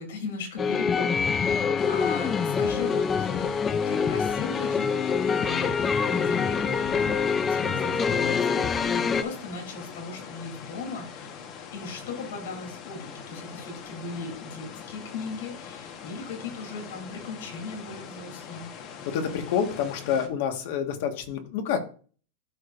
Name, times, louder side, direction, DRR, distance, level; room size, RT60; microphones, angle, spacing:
voice 1, 0.0-3.5 3.9-5.8 6.1-11.3 11.7-18.7, left 4 dB, 90° left, 2 dB, 3.0 m, -38 dB
sound 1, 0.6-9.2, left 6 dB, 15° left, 0.4 m, -25 dB
sound 2, 1.8-20.3, left 7 dB, 35° left, 1.1 m, -42 dB
voice 2, 18.7-21.8, left 8 dB, 60° left, 6 dB, 1.4 m, -28 dB
12.5 x 5.0 x 2.5 m, 0.39 s
supercardioid pair, 160°, 0 cm